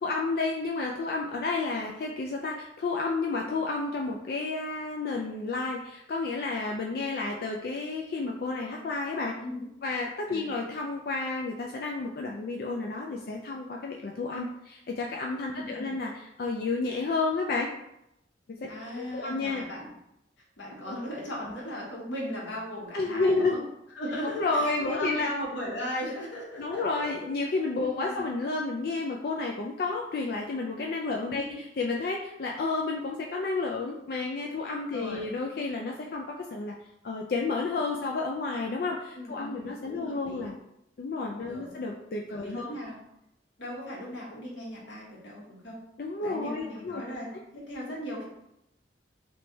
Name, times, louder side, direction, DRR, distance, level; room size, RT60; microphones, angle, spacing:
voice 1, 0.0-9.4 9.8-17.7 18.5-19.6 20.9-21.0 22.9-23.6 24.3-25.3 26.6-36.8 37.0-40.6 41.0-42.7 46.0-47.0, left 3 dB, 55° left, 0 dB, 0.4 m, -31 dB
voice 2, 9.4-9.7 10.3-10.5 15.5-15.9 18.7-19.9 20.6-23.6 23.9-27.1 27.8-28.2 31.3-31.6 34.9-35.3 39.1-40.5 41.4-41.7 42.3-43.0 43.6-45.8 46.2-48.3, equal, 90° left, -4 dB, 1.4 m, -37 dB
3.3 x 3.2 x 3.9 m, 0.82 s
head